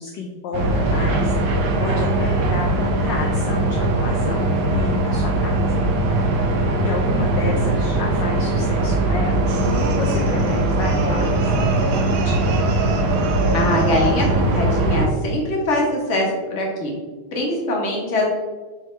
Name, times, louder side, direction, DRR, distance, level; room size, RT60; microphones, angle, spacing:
voice 1, 0.0-1.3 1.8-5.8 6.7-9.6 9.9-12.5, left 4 dB, 70° left, 1 dB, 1.2 m, -31 dB
sound 1, 0.5-15.1, right 2 dB, 60° right, 1.3 m, -20 dB
sound 2, 9.5-14.4, right 1 dB, 75° right, 1.6 m, -30 dB
voice 2, 13.5-16.9 17.3-18.3, left 1 dB, 40° left, -2 dB, 1.5 m, -22 dB
6.5 x 3.6 x 4.5 m, 1.3 s
omnidirectional pair, 2.4 m